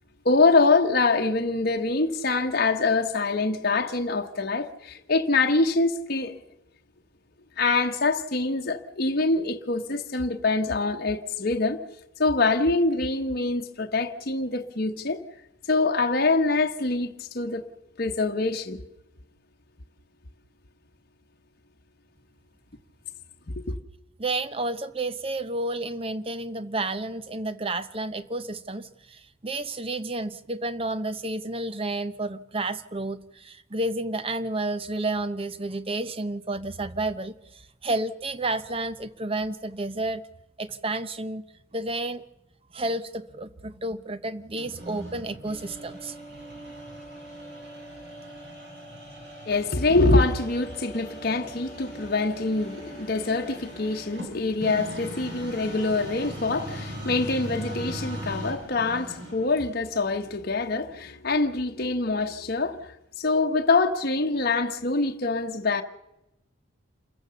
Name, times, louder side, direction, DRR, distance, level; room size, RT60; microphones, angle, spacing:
voice 1, 0.2-6.4 7.6-11.8 12.2-15.2 15.7-17.7 18.0-18.8 23.7-23.8 49.5-65.8, left 3 dB, 45° left, 1.1 m, -25 dB
voice 2, 24.2-40.3 40.6-41.4 41.7-42.2 42.7-46.4, right 2 dB, 25° right, 0.8 m, -31 dB
sound 1, 44.6-59.6, right 1 dB, 55° right, 6.7 m, -40 dB
27.5 x 15.0 x 6.9 m
head